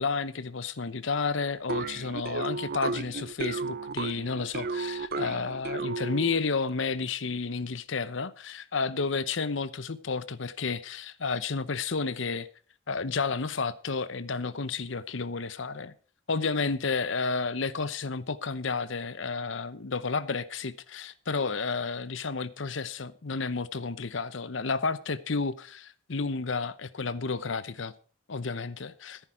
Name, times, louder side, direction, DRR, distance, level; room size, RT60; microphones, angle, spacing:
voice 1, 0.0-12.5 12.9-15.9 16.3-27.9 28.3-29.2, left 4 dB, 70° left, 0.8 m, -31 dB
sound 1, 1.7-6.5, right 4 dB, 45° right, 0.6 m, -34 dB
14.0 x 10.5 x 4.8 m
head